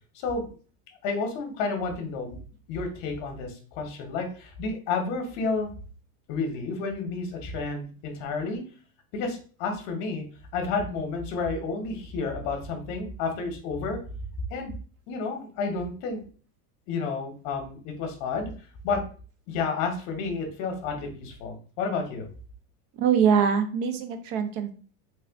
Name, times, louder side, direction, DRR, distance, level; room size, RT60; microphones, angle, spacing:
voice 1, 0.1-0.5 1.0-2.3 2.7-5.7 6.3-8.6 9.1-10.2 10.5-14.0 14.5-14.7 15.1-16.2 16.9-18.5 18.8-19.0 19.5-22.3, left 4 dB, 40° left, 4 dB, 0.9 m, -31 dB
voice 2, 22.9-24.7, right 7 dB, 40° right, 8 dB, 0.4 m, -23 dB
3.3 x 2.3 x 3.4 m, 0.39 s
supercardioid pair, 165°, 45 cm